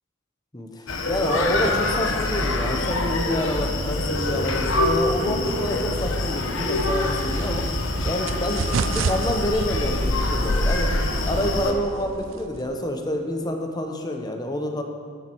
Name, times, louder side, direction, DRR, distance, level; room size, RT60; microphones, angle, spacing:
voice 1, 0.5-7.7 8.0-10.9 11.2-14.8, left 1 dB, 20° left, 4 dB, 0.9 m, -28 dB
Screaming, 0.9-11.7, left 2 dB, 70° left, 1.0 m, -25 dB
sound 1, 6.6-12.8, right 5 dB, 70° right, 0.4 m, -32 dB
14.0 x 7.4 x 4.6 m, 2.2 s
head